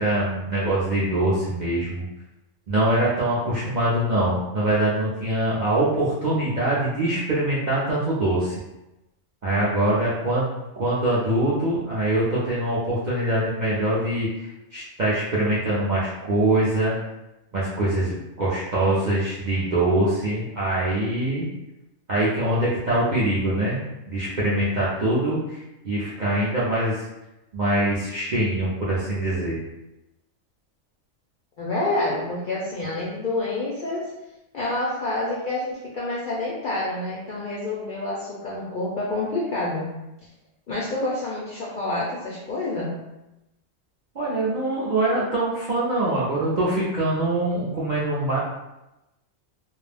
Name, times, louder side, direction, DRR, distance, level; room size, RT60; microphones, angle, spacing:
voice 1, 0.0-2.0 2.7-8.6 9.4-10.4 10.8-16.9 17.5-21.4 22.1-23.8 24.1-27.1 27.5-29.6 44.1-48.4, right 1 dB, 55° right, -8 dB, 0.5 m, -23 dB
voice 2, 31.6-34.0 34.5-39.9 40.7-42.9, left 2 dB, 60° left, -6 dB, 0.5 m, -28 dB
2.4 x 2.0 x 3.2 m, 0.95 s
omnidirectional pair, 1.3 m